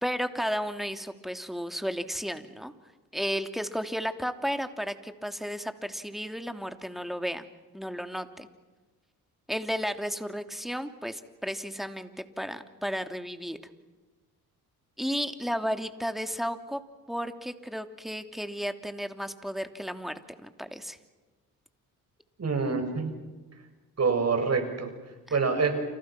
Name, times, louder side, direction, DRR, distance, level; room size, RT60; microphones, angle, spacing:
voice 1, 0.0-2.7 3.1-7.5 7.7-8.5 9.5-13.6 15.0-16.8 17.1-20.1 20.4-21.0, equal, ahead, 7 dB, 3.0 m, -33 dB
voice 2, 22.4-23.1 24.0-24.9 25.3-25.8, right 4 dB, 40° right, 6 dB, 6.9 m, -26 dB
29.5 x 28.0 x 6.1 m, 1.2 s
supercardioid pair, 60°, 38 cm